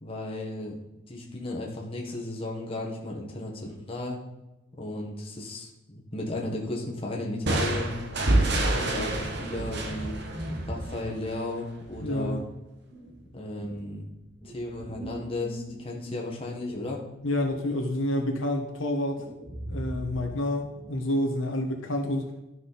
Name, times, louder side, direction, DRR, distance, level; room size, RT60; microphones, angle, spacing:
voice 1, 0.0-0.8 1.1-4.2 4.8-8.0 8.7-10.2 10.7-12.4 13.3-14.1 14.4-17.0, left 1 dB, 30° left, -1 dB, 1.5 m, -35 dB
sound 1, 7.5-11.1, right 1 dB, 55° right, 1.3 m, -27 dB
sound 2, 9.6-11.4 11.9-12.5 12.9-16.0 16.5-18.0 18.3-18.6 19.1-20.3 20.6-21.0, right 1 dB, 35° right, 3.4 m, -40 dB
voice 2, 12.0-12.4 17.2-19.2 19.7-22.2, left 1 dB, 80° left, 2 dB, 1.5 m, -28 dB
11.5 x 6.2 x 4.2 m, 0.95 s
head